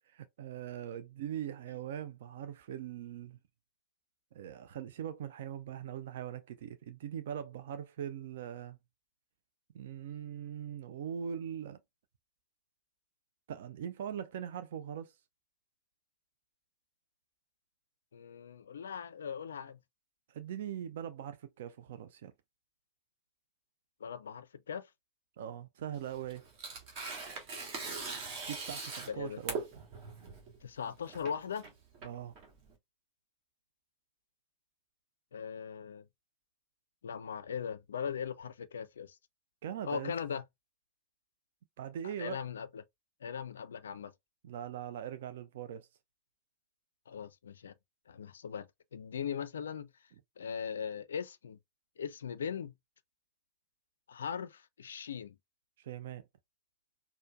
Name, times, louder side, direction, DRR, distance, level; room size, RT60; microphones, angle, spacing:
voice 1, 0.1-3.4 4.3-8.8 9.7-11.8 13.5-15.2 20.3-22.3 25.4-26.5 28.5-29.7 32.0-32.3 39.6-40.1 41.8-42.4 44.4-45.9 55.8-56.2, right 9 dB, 60° right, 0.4 m, -41 dB
voice 2, 18.1-19.8 24.0-24.8 29.1-29.4 30.6-31.7 35.3-36.0 37.0-39.2 39.8-40.4 42.0-42.8 43.2-44.1 47.1-47.7 48.1-49.9 50.4-51.6 52.0-52.7 54.1-55.4, left 7 dB, 65° left, 0.3 m, -39 dB
Tearing, 25.9-32.7, right 4 dB, 40° right, 1.5 m, -42 dB
4.3 x 2.2 x 2.3 m
figure-of-eight pair, 90°, 0 cm